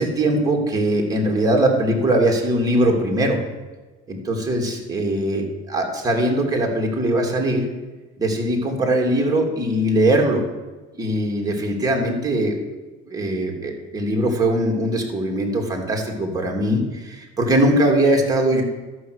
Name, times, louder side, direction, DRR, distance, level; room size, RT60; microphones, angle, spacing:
voice 1, 0.0-3.4 4.1-7.6 8.2-10.4 10.9-12.5 13.1-18.6, right 1 dB, 20° right, 0 dB, 3.1 m, -21 dB
13.0 x 6.4 x 8.2 m, 1.2 s
cardioid pair, 110°, 19 cm